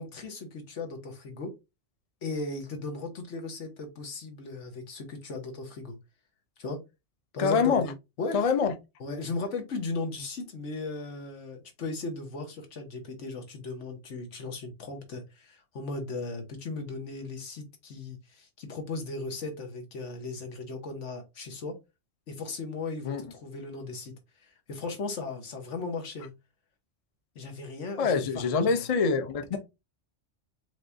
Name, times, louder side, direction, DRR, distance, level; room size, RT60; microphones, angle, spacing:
voice 1, 0.0-1.5 2.2-6.0 6.6-6.8 7.3-8.4 9.0-21.7 22.3-26.3 27.3-28.7 29.5-29.6, left 3 dB, 80° left, 1.5 m, -37 dB
voice 2, 7.4-7.9 8.3-8.7 23.0-23.2 28.0-29.6, left 5 dB, 40° left, 0.5 m, -25 dB
5.1 x 3.2 x 2.6 m
omnidirectional pair, 1.2 m